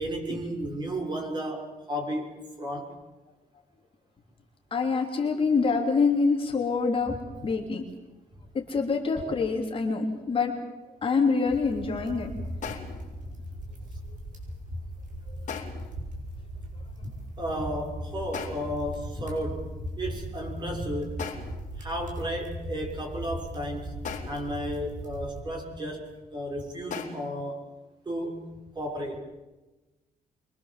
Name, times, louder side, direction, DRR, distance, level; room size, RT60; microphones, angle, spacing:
voice 1, 0.0-2.9 7.1-7.5 17.0-17.1 17.4-21.3 21.8-24.0 24.3-27.6 28.0-28.5 28.7-29.2, equal, 30° right, 1 dB, 6.2 m, -33 dB
voice 2, 4.7-7.1 7.4-7.8 8.5-10.5 11.0-12.3, left 4 dB, 35° left, 1 dB, 3.3 m, -25 dB
sound 1, 11.5-25.4, equal, 55° right, 7.1 m, -39 dB
sound 2, 12.6-13.1 15.5-16.0 18.3-18.8 21.2-21.7 24.0-24.6 26.9-27.4, left 6 dB, 55° left, 3.4 m, -38 dB
26.0 x 24.0 x 7.6 m, 1.1 s
wide cardioid pair, 170°, 16 cm